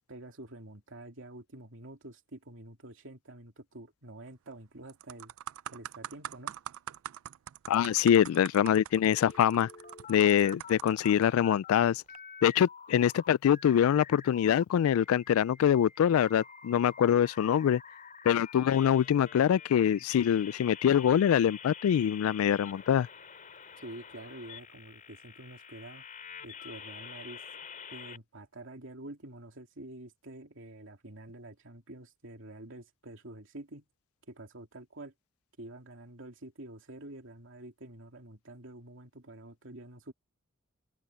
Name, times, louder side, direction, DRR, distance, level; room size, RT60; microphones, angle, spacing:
voice 1, 0.1-5.3 5.7-6.5 23.8-26.1 26.4-27.4 27.9-33.9 34.3-35.1 35.6-40.1, right 1 dB, 65° right, 2.8 m, -47 dB
sound 1, 4.3-4.5 4.9-11.3 12.0-12.2, right 11 dB, 80° right, 0.4 m, -44 dB
voice 2, 7.7-9.7 10.1-12.0 12.4-17.8 18.3-23.1, left 9 dB, 85° left, 0.3 m, -24 dB
sound 2, 9.1-11.7 12.1-14.6 15.0-28.2, left 7 dB, 40° left, 3.0 m, -48 dB
head